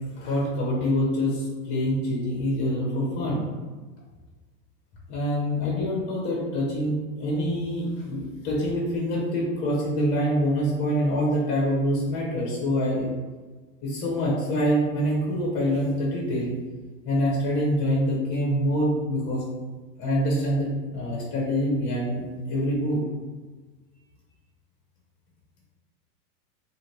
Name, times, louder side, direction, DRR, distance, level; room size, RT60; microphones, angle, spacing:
voice 1, 0.0-3.4 5.1-13.1 13.8-16.5 17.0-19.4 20.0-23.0, equal, 20° left, -5 dB, 0.7 m, -25 dB
2.7 x 2.5 x 3.1 m, 1.3 s
supercardioid pair, 130°, 48 cm